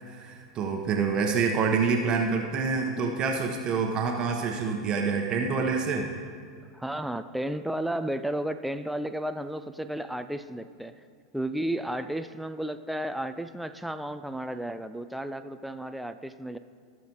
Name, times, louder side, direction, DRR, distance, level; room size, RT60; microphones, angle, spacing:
voice 1, 0.0-6.1, right 5 dB, 35° right, 2 dB, 1.0 m, -27 dB
voice 2, 6.7-10.9 11.3-16.6, right 1 dB, ahead, 9 dB, 0.4 m, -33 dB
17.0 x 6.5 x 3.0 m, 2.2 s
figure-of-eight pair, 90°, 2 cm